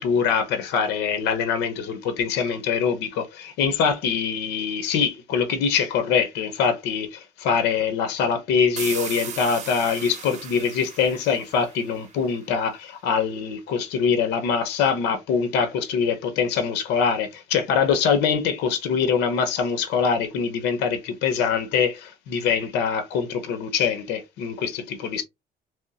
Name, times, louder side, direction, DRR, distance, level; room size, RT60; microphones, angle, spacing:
voice 1, 0.0-25.2, left 6 dB, 85° left, 0.8 m, -24 dB
sound 1, 8.8-12.4, right 7 dB, 45° right, 1.2 m, -37 dB
3.5 x 3.0 x 2.8 m
cardioid pair, 110°, 17 cm